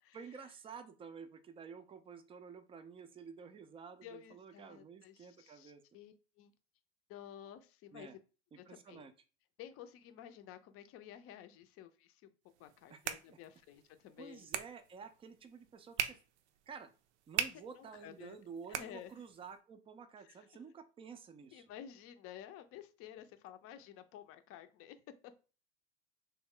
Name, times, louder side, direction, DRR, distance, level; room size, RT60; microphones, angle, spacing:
voice 1, 0.1-5.8 7.9-8.2 8.5-9.1 12.9-13.0 13.3-13.4 14.2-16.2 16.7-16.9 17.3-21.7, right 6 dB, 15° right, 10 dB, 0.4 m, -51 dB
voice 2, 4.0-6.5 7.1-8.1 8.6-9.1 9.6-12.2 12.6-14.5 17.8-18.4 18.7-19.1 20.2-20.3 21.5-25.0 25.2-25.4, left 10 dB, 40° left, 10 dB, 0.5 m, -52 dB
sound 1, 12.5-19.5, right 9 dB, 75° right, 0.5 m, -43 dB
3.1 x 2.1 x 3.6 m, 0.35 s
hypercardioid pair, 90°, 35 cm